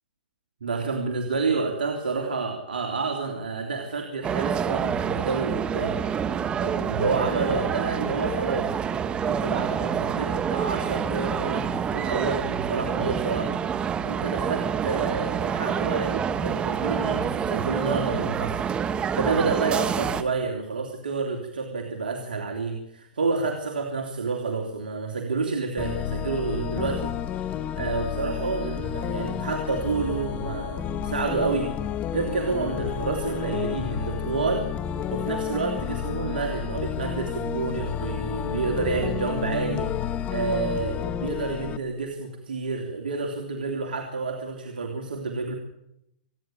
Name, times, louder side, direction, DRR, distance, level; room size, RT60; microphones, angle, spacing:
voice 1, 0.6-6.0 6.5-8.7 9.2-13.5 14.0-18.7 19.1-27.1 27.4-31.7 32.1-34.7 35.1-39.9 40.3-45.5, right 4 dB, 85° right, 2 dB, 3.2 m, -29 dB
sound 1, 4.2-20.2, right 7 dB, 20° right, 1.3 m, -27 dB
sound 2, 25.8-41.8, left 9 dB, 25° left, 1.4 m, -31 dB
27.0 x 10.5 x 9.2 m, 0.82 s
hypercardioid pair, 130°, 5 cm